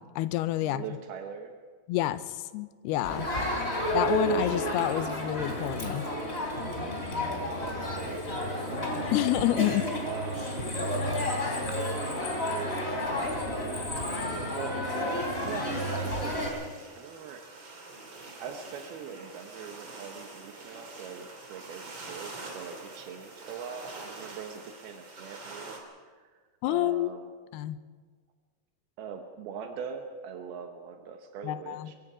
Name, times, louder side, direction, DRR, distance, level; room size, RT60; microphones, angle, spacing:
voice 1, 0.0-0.8 1.9-3.3 3.9-6.1 9.1-9.8 26.6-27.1 27.5-27.8 31.4-31.9, left 15 dB, 90° left, 14 dB, 2.7 m, -28 dB
voice 2, 0.6-1.5 3.1-3.4 7.2-9.0 10.0-10.7 11.2-13.0 14.2-14.8 15.4-17.5 18.4-25.8 26.7-27.3 29.0-31.9, right 6 dB, 80° right, 5 dB, 3.0 m, -42 dB
Crowd, 3.0-16.5, equal, 15° left, 3.1 m, -31 dB
sound 1, 15.1-25.8, right 3 dB, 30° right, 3.2 m, -45 dB
23.5 x 22.5 x 5.0 m, 1.5 s
omnidirectional pair, 4.5 m